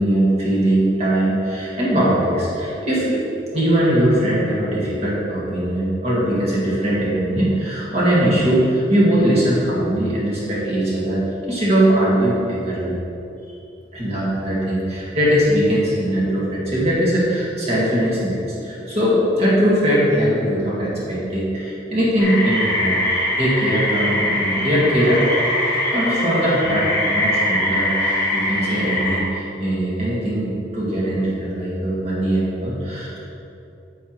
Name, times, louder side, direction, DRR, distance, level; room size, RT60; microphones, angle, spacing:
voice 1, 0.0-3.2 3.5-13.0 13.9-25.3 25.9-33.2, right 1 dB, 35° right, -7 dB, 1.9 m, -20 dB
sound 1, 22.2-29.2, left 1 dB, 15° left, 2.0 m, -22 dB
8.9 x 8.2 x 3.1 m, 2.7 s
head